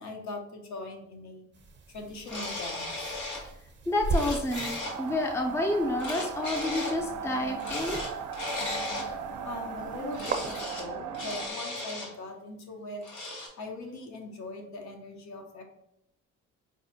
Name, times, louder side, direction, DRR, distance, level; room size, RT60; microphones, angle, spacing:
voice 1, 0.0-1.5 1.9-3.2 9.4-13.0 13.6-15.6, left 2 dB, 65° left, 3 dB, 0.8 m, -40 dB
sound 1, 1.5-10.6, right 2 dB, 35° right, 0.6 m, -39 dB
sound 2, 2.3-3.5 3.9-5.0 6.0-7.0 7.6-9.1 10.1-10.9 11.1-12.1 13.0-13.5, left 2 dB, 85° left, 1.1 m, -36 dB
voice 2, 3.9-8.0, left 1 dB, 10° left, 3 dB, 0.4 m, -29 dB
sound 3, 4.9-11.5, right 6 dB, 80° right, 0.5 m, -38 dB
4.9 x 2.1 x 2.7 m, 0.82 s
cardioid pair, 90°, 30 cm